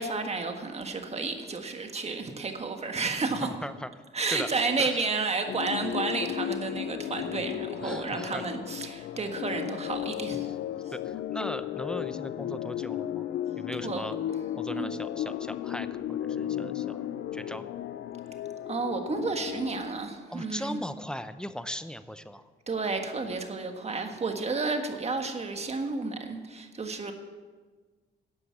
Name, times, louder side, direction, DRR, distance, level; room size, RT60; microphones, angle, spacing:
voice 1, 0.0-3.5 4.1-10.5 13.8-14.0 14.7-14.9 18.6-20.8 22.7-27.1, right 3 dB, 30° right, 5 dB, 1.6 m, -31 dB
voice 2, 3.4-3.9 4.3-4.5 4.8-4.9 7.8-8.5 10.4-10.5 10.9-13.3 13.6-14.2 14.6-17.0 17.3-17.6 20.3-22.4, equal, 5° left, 11 dB, 0.7 m, -38 dB
sound 1, 5.5-19.9, left 11 dB, 70° left, 0.5 m, -34 dB
12.0 x 8.1 x 7.2 m, 1.4 s
cardioid pair, 90°, 20 cm